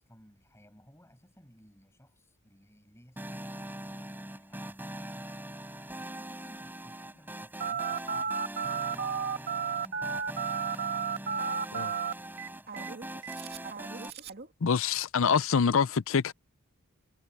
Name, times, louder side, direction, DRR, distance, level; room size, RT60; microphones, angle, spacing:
voice 1, 0.0-5.3 6.0-11.0 11.3-12.7, equal, 10° left, 7.3 m, -59 dB
sound 1, 3.2-14.1, right 1 dB, 10° right, 4.4 m, -42 dB
Telephone, 7.6-14.5, right 6 dB, 45° right, 2.4 m, -33 dB
voice 2, 14.6-16.3, left 6 dB, 60° left, 0.5 m, -25 dB
head